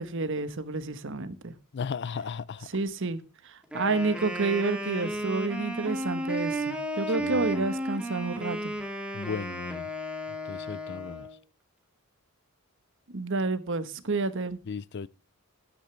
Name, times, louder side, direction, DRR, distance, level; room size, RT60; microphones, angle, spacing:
voice 1, 0.0-1.5 2.7-3.2 3.4-8.7 13.1-14.6, right 3 dB, 55° right, 1.2 m, -30 dB
voice 2, 1.7-2.7 7.2-7.6 9.1-9.9 10.4-11.3 14.7-15.1, left 5 dB, 50° left, 0.4 m, -36 dB
Wind instrument woodwind instrument, 3.6-11.4, right 1 dB, 5° right, 2.2 m, -33 dB
13.0 x 10.0 x 3.3 m
head